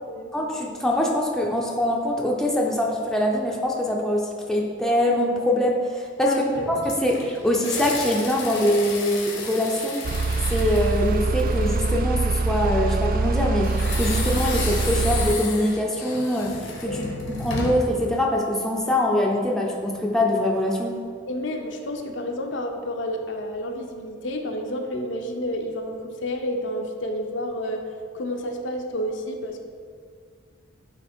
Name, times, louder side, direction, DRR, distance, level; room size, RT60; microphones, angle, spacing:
voice 1, 0.3-6.3 6.8-10.0 10.5-21.0, left 1 dB, 5° left, -1 dB, 0.6 m, -23 dB
voice 2, 6.3-6.7 16.8-17.1 21.3-27.8 28.1-29.6, left 1 dB, 65° left, 3 dB, 0.7 m, -30 dB
sound 1, 6.5-11.9 13.6-18.0, left 4 dB, 85° left, 1.2 m, -33 dB
sound 2, 10.0-15.3, right 3 dB, 45° right, 0.3 m, -24 dB
8.9 x 3.3 x 4.4 m, 2.1 s
head